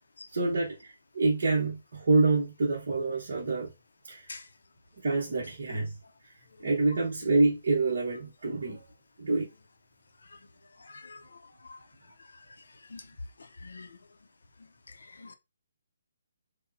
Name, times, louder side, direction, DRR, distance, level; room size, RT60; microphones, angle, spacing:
voice 1, 0.3-3.7 4.1-4.3 5.0-6.0 6.6-8.8 9.2-9.5, right 3 dB, 50° right, 1.1 m, -27 dB
voice 2, 10.9-11.2 11.6-11.8 12.9-13.0 13.6-13.9 15.2-15.3, left 3 dB, 80° left, 0.6 m, -44 dB
4.8 x 2.2 x 2.7 m
hypercardioid pair, 175°, 0 cm